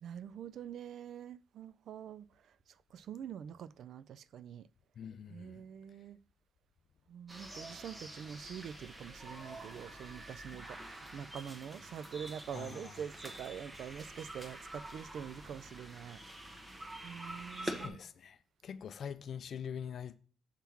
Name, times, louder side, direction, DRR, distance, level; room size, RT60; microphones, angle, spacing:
voice 1, 0.0-2.5 2.9-4.7 5.3-6.2 7.1-16.2 17.0-18.0, right 8 dB, 70° right, 0.3 m, -45 dB
voice 2, 5.0-5.6 12.5-12.9 17.3-20.1, left 8 dB, 60° left, 0.4 m, -44 dB
sound 1, 7.3-17.9, right 1 dB, 25° right, 1.2 m, -47 dB
7.3 x 3.5 x 5.8 m
cardioid pair, 90°, 0 cm